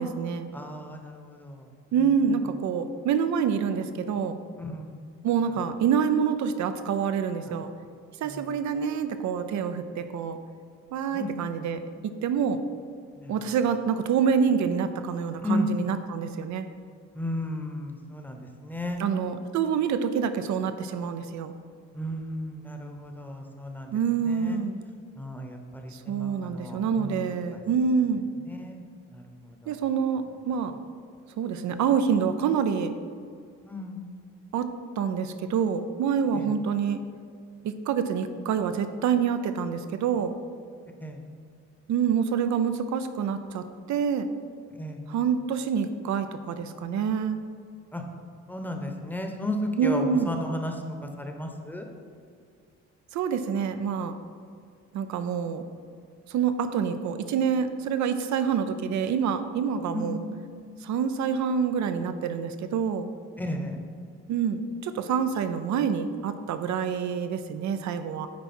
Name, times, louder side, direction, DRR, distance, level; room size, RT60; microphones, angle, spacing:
voice 1, 0.0-0.5 1.9-4.4 5.2-7.7 8.2-10.4 10.9-11.8 12.2-12.6 13.3-16.7 19.0-21.5 23.9-24.8 25.9-28.3 29.7-30.7 31.4-32.9 34.5-34.7 35.0-37.0 37.6-40.4 41.9-44.3 45.1-47.4 49.8-50.3 53.1-54.2 54.9-55.6 56.3-60.2 60.8-63.1 64.3-68.3, right 7 dB, 70° right, 10 dB, 0.6 m, -27 dB
voice 2, 0.5-1.7 2.0-2.4 4.6-5.0 5.4-5.6 7.5-7.6 8.2-8.5 11.1-11.3 13.2-13.4 15.4-15.7 17.1-19.0 21.9-23.9 24.2-24.6 25.2-27.2 27.5-27.6 28.4-28.8 29.1-29.8 33.6-34.0 36.3-36.5 41.0-41.2 44.8-45.0 47.9-48.0 48.5-50.8 51.2-51.9 59.9-60.2 63.4-63.8, left 1 dB, 5° left, 3 dB, 0.9 m, -34 dB
9.4 x 4.6 x 4.3 m, 2.1 s
cardioid pair, 90°, 30 cm